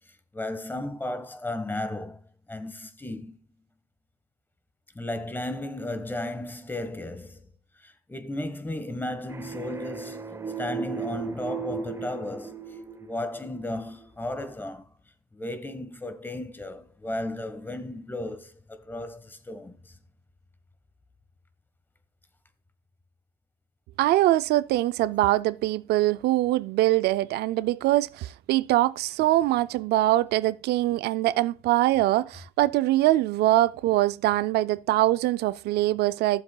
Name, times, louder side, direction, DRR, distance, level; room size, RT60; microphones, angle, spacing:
voice 1, 0.1-2.2 2.5-3.4 4.9-7.5 7.8-14.9 15.3-20.0, left 1 dB, 10° left, 1.2 m, -35 dB
sound 1, 9.3-13.8, right 6 dB, 15° right, 0.9 m, -36 dB
voice 2, 24.0-36.4, right 16 dB, 75° right, 0.4 m, -23 dB
15.0 x 7.2 x 2.3 m
cardioid pair, 110°, 17 cm